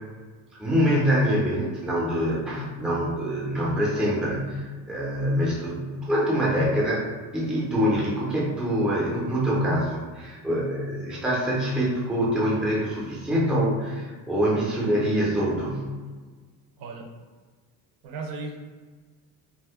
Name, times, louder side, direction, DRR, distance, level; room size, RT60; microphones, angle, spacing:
voice 1, 0.6-7.0 7.3-15.9, equal, ahead, -5 dB, 0.4 m, -25 dB
voice 2, 16.8-17.1 18.0-18.6, right 3 dB, 85° right, 2 dB, 0.7 m, -36 dB
2.5 x 2.5 x 3.5 m, 1.4 s
cardioid pair, 175°, 36 cm